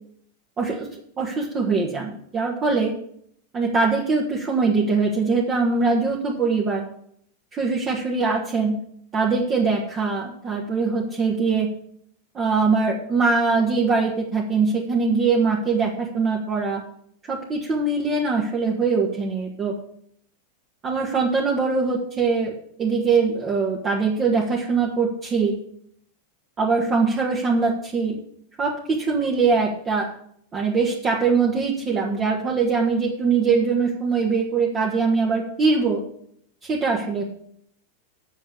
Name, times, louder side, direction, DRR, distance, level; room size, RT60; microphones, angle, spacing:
voice 1, 0.6-0.9 1.2-2.9 3.5-6.8 7.5-8.8 9.1-11.7 12.3-16.8 17.3-19.8 20.8-22.5 22.8-25.6 26.6-28.2 28.6-30.1 30.5-36.0 36.6-37.2, right 4 dB, 25° right, -2 dB, 1.6 m, -22 dB
8.3 x 6.4 x 8.2 m, 0.68 s
figure-of-eight pair, 90°, 0 cm